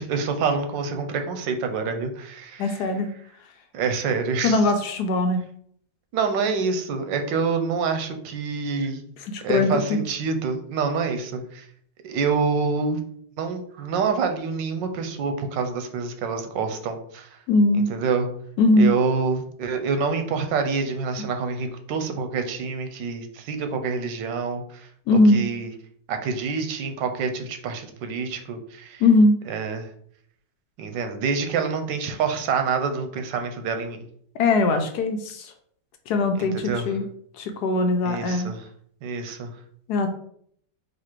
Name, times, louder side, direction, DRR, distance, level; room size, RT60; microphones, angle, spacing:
voice 1, 0.0-2.8 3.7-4.7 6.1-9.0 9.4-11.7 12.0-13.0 13.4-17.4 17.9-18.3 18.8-25.7 26.1-29.0 29.5-29.9 30.8-34.0 36.4-36.9 38.0-38.7 39.0-39.5, right 5 dB, 90° right, 6 dB, 1.4 m, -27 dB
voice 2, 2.6-3.1 4.4-5.4 9.3-10.0 17.5-17.9 18.6-18.9 25.1-25.4 29.0-29.3 34.3-35.5 36.1-37.0 37.4-38.5 39.9-40.1, left 2 dB, 75° left, 6 dB, 1.1 m, -20 dB
4.1 x 2.6 x 4.4 m, 0.63 s
omnidirectional pair, 1.9 m